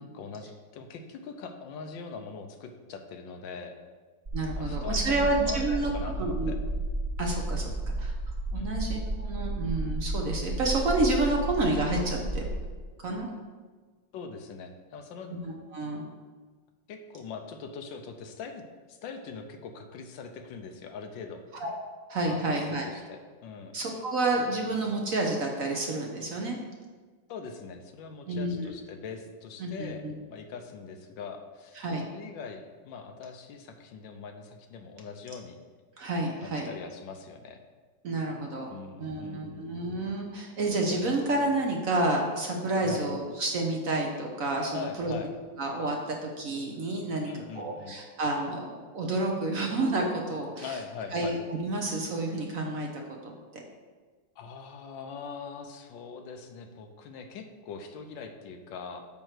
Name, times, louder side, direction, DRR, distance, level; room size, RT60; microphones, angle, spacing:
voice 1, 0.0-3.8 4.6-6.6 7.6-7.8 8.5-8.9 14.1-15.3 16.9-18.6 18.9-21.4 22.3-22.4 22.8-23.8 27.3-30.0 30.3-35.6 36.4-37.6 38.7-39.7 42.8-43.1 44.7-45.3 47.3-48.0 50.6-51.3 54.4-59.0, left 5 dB, 80° left, 6 dB, 1.4 m, -42 dB
sound 1, 4.3-12.5, right 1 dB, 35° right, 1.4 m, -32 dB
voice 2, 4.3-5.9 6.2-6.5 7.2-7.7 8.0-8.1 8.5-12.5 13.0-13.3 15.3-16.0 21.5-21.7 22.1-22.9 23.7-26.6 28.3-28.7 29.6-30.1 31.8-32.1 36.0-36.7 38.0-38.7 39.0-45.1 45.6-50.8 51.1-53.6, right 2 dB, 55° right, 1 dB, 1.0 m, -29 dB
8.8 x 3.1 x 6.4 m, 1.4 s
omnidirectional pair, 2.0 m